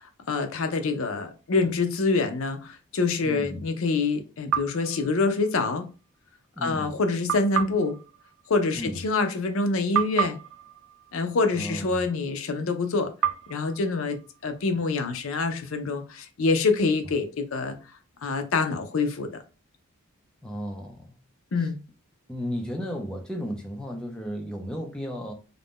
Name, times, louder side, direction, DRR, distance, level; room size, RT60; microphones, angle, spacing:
voice 1, 0.3-5.9 6.6-8.0 8.5-10.4 11.1-13.1 13.5-17.8 18.2-19.4 21.5-21.8, left 3 dB, 65° left, 0.5 m, -26 dB
voice 2, 3.2-3.7 6.6-6.9 8.8-9.0 11.5-12.1 20.4-21.2 21.6-21.7 22.3-25.3, equal, 5° left, 0.3 m, -34 dB
sound 1, 4.5-5.9 7.3-9.6 9.9-12.2 13.2-15.1, right 9 dB, 75° right, 0.4 m, -33 dB
2.5 x 2.1 x 3.5 m
head